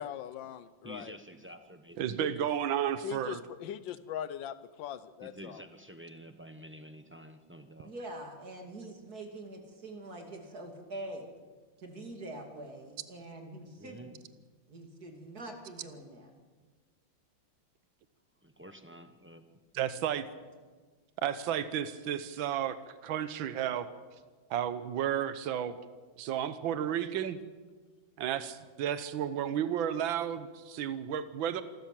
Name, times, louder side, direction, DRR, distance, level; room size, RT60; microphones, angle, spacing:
voice 1, 0.0-1.2 2.2-2.3 3.0-5.6, left 10 dB, 70° left, 14 dB, 1.5 m, -40 dB
voice 2, 0.8-2.4 5.2-7.9 13.8-14.1 18.4-19.5, right 1 dB, 10° right, 7 dB, 0.5 m, -49 dB
voice 3, 2.0-3.4 19.7-20.2 21.2-22.8 23.0-23.9 24.5-25.7 26.2-27.4 28.2-31.6, right 10 dB, 75° right, 12 dB, 1.7 m, -32 dB
voice 4, 7.8-11.3 11.8-14.1 14.7-16.3, right 1 dB, 50° right, 3 dB, 3.3 m, -44 dB
26.5 x 13.0 x 7.6 m, 1.4 s
omnidirectional pair, 2.2 m